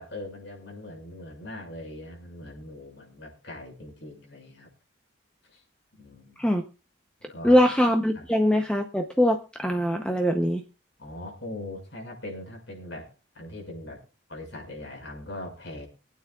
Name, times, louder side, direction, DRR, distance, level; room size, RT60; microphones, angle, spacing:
voice 1, 0.0-4.7 5.5-5.6 6.0-6.4 7.3-7.6 8.1-8.2 11.0-14.0 14.3-15.9, left 1 dB, 70° left, 0 dB, 6.3 m, -41 dB
voice 2, 7.4-10.6, equal, 5° left, 4 dB, 0.8 m, -22 dB
24.5 x 9.2 x 2.4 m, 0.32 s
head